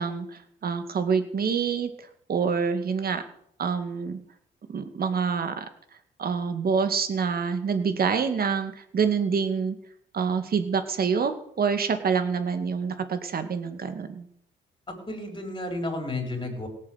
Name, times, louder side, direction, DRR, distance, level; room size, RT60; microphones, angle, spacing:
voice 1, 0.0-3.2 3.6-4.2 4.7-5.7 6.2-9.8 10.1-14.3, right 6 dB, 50° right, 8 dB, 2.2 m, -26 dB
voice 2, 14.9-16.7, left 2 dB, 25° left, 4 dB, 5.2 m, -32 dB
17.5 x 7.6 x 8.1 m, 0.69 s
cardioid pair, 90°, 20 cm